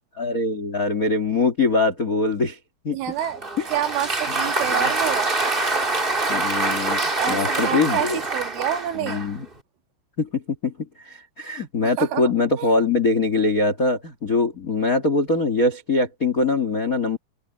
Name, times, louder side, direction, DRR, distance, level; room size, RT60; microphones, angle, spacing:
voice 1, 0.2-2.6 2.8-3.0 3.6-3.7 4.3-4.4 4.7-4.9 6.3-8.2 8.9-9.4 10.2-10.7 11.0-17.2, left 3 dB, 90° left, 0.7 m, -23 dB
voice 2, 2.9-3.4 3.7-5.3 7.2-9.2 12.0-12.2 12.6-12.7, right 10 dB, 85° right, 4.3 m, -27 dB
Applause, 3.2-9.4, right 2 dB, 25° right, 1.1 m, -25 dB
open air
omnidirectional pair, 5.4 m